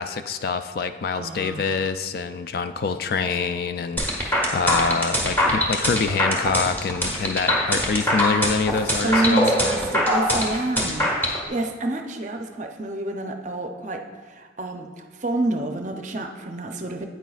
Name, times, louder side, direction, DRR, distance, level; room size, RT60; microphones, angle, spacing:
voice 1, 0.0-9.5, left 5 dB, 50° left, 10 dB, 0.3 m, -26 dB
voice 2, 1.1-1.9 9.0-17.1, right 2 dB, 40° right, 4 dB, 0.6 m, -28 dB
sound 1, 4.0-11.4, equal, 10° left, 1.1 m, -22 dB
9.1 x 9.0 x 2.4 m, 1.5 s
head